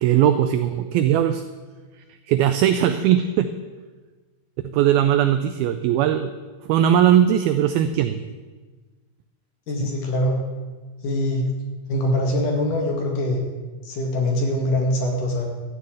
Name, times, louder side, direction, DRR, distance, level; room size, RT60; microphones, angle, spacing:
voice 1, 0.0-1.4 2.3-3.5 4.6-6.3 6.6-8.2, right 10 dB, 85° right, 9 dB, 2.1 m, -19 dB
voice 2, 9.7-10.4 11.0-11.4 11.9-13.4 13.8-15.5, left 1 dB, 55° left, 1 dB, 3.0 m, -23 dB
13.5 x 6.9 x 9.0 m, 1.3 s
omnidirectional pair, 4.9 m